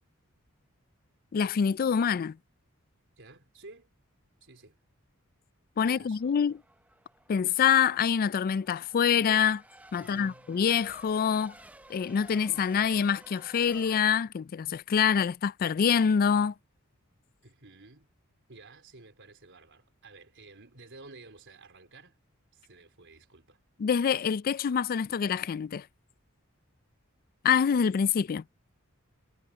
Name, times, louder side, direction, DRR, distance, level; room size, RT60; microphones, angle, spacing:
voice 1, 1.3-2.4 5.8-6.6 7.3-9.6 9.9-11.5 11.9-16.5 23.8-25.8 27.4-28.4, left 7 dB, 45° left, 0.3 m, -26 dB
voice 2, 3.2-3.9 4.4-4.8 5.8-6.4 9.9-10.5 17.4-18.1 18.5-22.2 22.5-23.6, right 3 dB, 60° right, 4.2 m, -52 dB
Race car auto racing / Accelerating revving vroom / Mechanisms, 6.1-14.0, right 1 dB, 5° right, 0.9 m, -54 dB
head